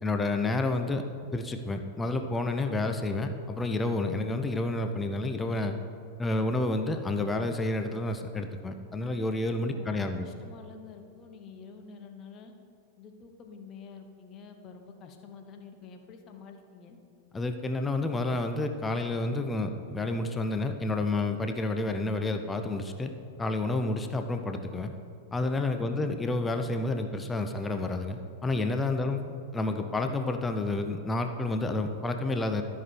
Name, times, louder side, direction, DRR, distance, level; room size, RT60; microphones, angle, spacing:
voice 1, 0.0-1.0 1.3-5.8 6.2-10.3 17.3-23.1 23.4-24.9 25.3-29.2 29.5-32.6, left 2 dB, 15° left, 6 dB, 0.6 m, -30 dB
voice 2, 9.7-12.5 13.0-17.0 25.8-26.1, left 5 dB, 30° left, 5 dB, 1.1 m, -48 dB
13.5 x 5.9 x 4.5 m, 2.5 s
figure-of-eight pair, 90°, 0 cm